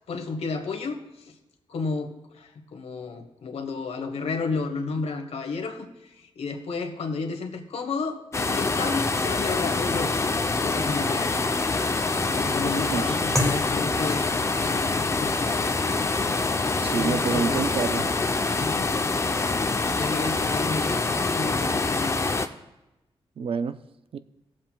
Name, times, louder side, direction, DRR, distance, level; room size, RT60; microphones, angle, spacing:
voice 1, 0.1-1.3 1.7-10.2 10.6-11.5 12.2-15.6 17.0-17.6 18.6-19.2 20.0-21.0 21.3-22.2, left 4 dB, 75° left, 1.2 m, -32 dB
sound 1, 8.3-22.5, left 3 dB, 25° left, 0.6 m, -25 dB
sound 2, 13.3-22.2, left 1 dB, 5° left, 1.1 m, -38 dB
voice 2, 16.8-18.1 23.4-23.8 24.1-24.2, right 6 dB, 60° right, 0.4 m, -27 dB
17.5 x 7.5 x 2.3 m
cardioid pair, 80°, 11 cm